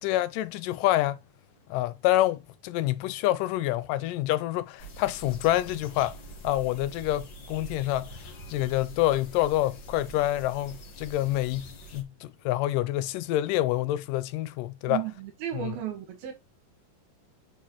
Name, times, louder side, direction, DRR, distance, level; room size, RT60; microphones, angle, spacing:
voice 1, 0.0-1.2 1.7-6.2 6.4-8.1 8.5-15.0 15.5-15.8, left 15 dB, 80° left, 2.0 m, -27 dB
sound 1, 4.8-12.0, right 1 dB, 60° left, 1.2 m, -45 dB
voice 2, 14.9-16.3, right 11 dB, 90° right, 3.4 m, -34 dB
10.5 x 3.7 x 3.0 m
omnidirectional pair, 4.1 m